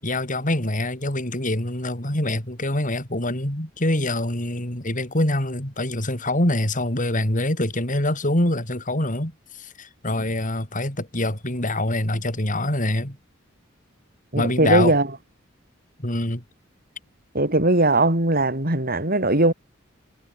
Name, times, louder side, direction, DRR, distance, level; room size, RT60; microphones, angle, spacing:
voice 1, 0.0-13.2 14.3-14.9 16.0-16.4, left 1 dB, 40° left, 6.1 m, -25 dB
voice 2, 14.3-15.1 17.3-19.5, right 2 dB, 50° right, 6.5 m, -19 dB
head